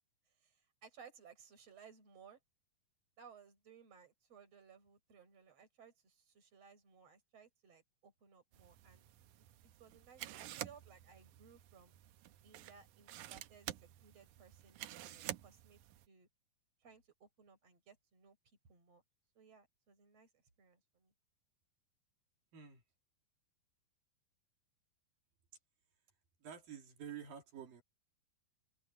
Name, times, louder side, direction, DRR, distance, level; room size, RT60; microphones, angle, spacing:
voice 1, 0.4-2.4 3.2-9.1 9.8-11.9 12.4-15.8 16.1-16.3 16.8-18.4 18.7-19.0 19.3-21.1, right 6 dB, 40° right, 6.7 m, -61 dB
sound 1, 8.5-16.1, right 13 dB, 85° right, 1.7 m, -50 dB
voice 2, 22.5-22.8 26.4-27.8, right 8 dB, 60° right, 4.7 m, -49 dB
open air
omnidirectional pair, 4.7 m